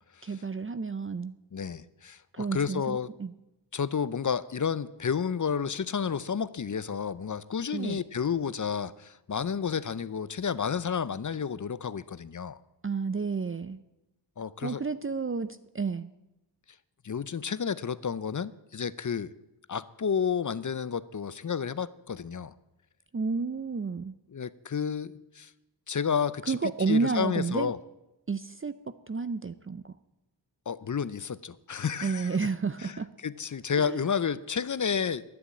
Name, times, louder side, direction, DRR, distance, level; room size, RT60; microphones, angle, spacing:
voice 1, 0.2-1.3 2.3-3.3 7.7-8.0 12.8-13.8 14.6-16.1 23.1-24.2 26.5-27.7 28.3-29.9 32.0-33.1 33.8-34.0, right 4 dB, 30° right, 13 dB, 0.5 m, -31 dB
voice 2, 1.5-3.1 3.7-12.6 14.4-14.8 17.0-19.3 19.7-22.5 24.3-25.5 25.9-26.6 26.9-27.8 30.7-32.4 32.8-35.2, left 6 dB, 45° left, 17 dB, 0.6 m, -31 dB
11.5 x 10.0 x 8.5 m, 0.94 s
wide cardioid pair, 85°, 44 cm